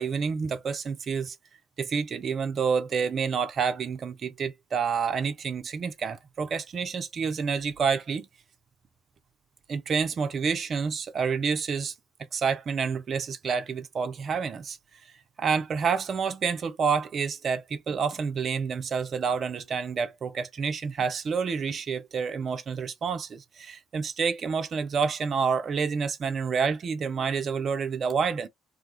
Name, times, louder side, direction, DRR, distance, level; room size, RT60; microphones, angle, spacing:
voice 1, 0.0-1.4 1.8-8.3 9.7-11.9 12.3-14.8 15.4-28.5, right 6 dB, 45° right, 0.4 m, -28 dB
2.4 x 2.3 x 2.6 m
figure-of-eight pair, 45°, 0 cm